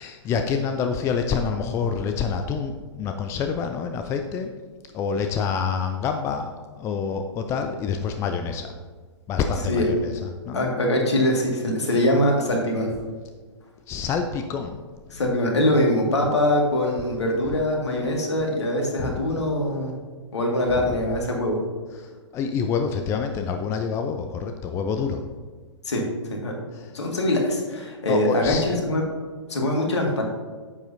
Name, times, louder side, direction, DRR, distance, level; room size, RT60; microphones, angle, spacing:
voice 1, 0.0-4.5 4.9-8.7 9.3-10.7 13.9-14.8 19.0-19.2 20.7-21.0 22.0-25.2 26.7-26.9 28.1-28.7, left 6 dB, 20° left, 6 dB, 0.4 m, -27 dB
voice 2, 10.5-12.9 15.1-19.9 20.3-21.6 25.9-26.0 26.3-26.5 26.9-29.0 29.5-30.2, left 1 dB, 65° left, 0 dB, 2.0 m, -23 dB
9.7 x 7.5 x 2.8 m, 1.5 s
figure-of-eight pair, 115°, 15 cm